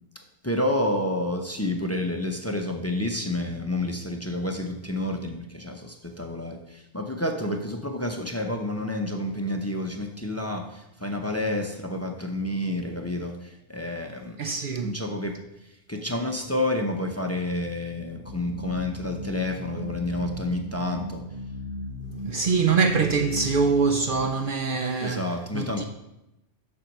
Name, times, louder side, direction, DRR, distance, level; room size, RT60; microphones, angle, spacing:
voice 1, 0.4-14.4 14.8-15.4 15.9-21.2 25.0-25.8, left 1 dB, 15° left, 0.7 m, -29 dB
voice 2, 14.4-14.9 22.2-25.8, right 5 dB, 55° right, 0.6 m, -24 dB
sound 1, 18.3-24.2, left 2 dB, 80° left, 1.1 m, -37 dB
7.4 x 6.3 x 5.3 m
omnidirectional pair, 1.2 m